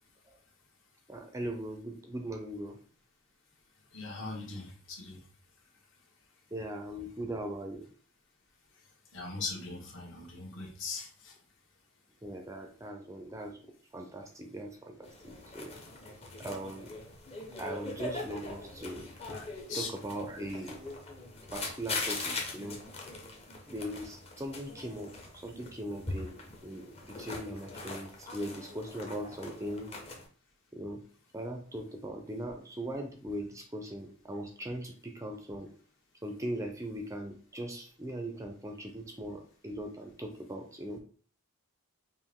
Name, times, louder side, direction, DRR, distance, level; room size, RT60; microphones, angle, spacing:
voice 1, 1.1-2.8 6.5-7.9 12.2-13.6 13.9-15.7 16.4-16.9 17.6-19.1 19.7-20.8 21.5-22.8 23.7-30.0 30.7-31.0 31.3-35.7 36.2-41.0, right 1 dB, 15° right, 4 dB, 0.5 m, -40 dB
voice 2, 3.9-5.3 8.7-11.4 19.3-19.9 20.6-20.7, left 3 dB, 60° left, -1 dB, 1.4 m, -41 dB
sound 1, 15.0-30.3, left 3 dB, 25° left, 0.8 m, -41 dB
5.3 x 2.6 x 3.5 m, 0.44 s
head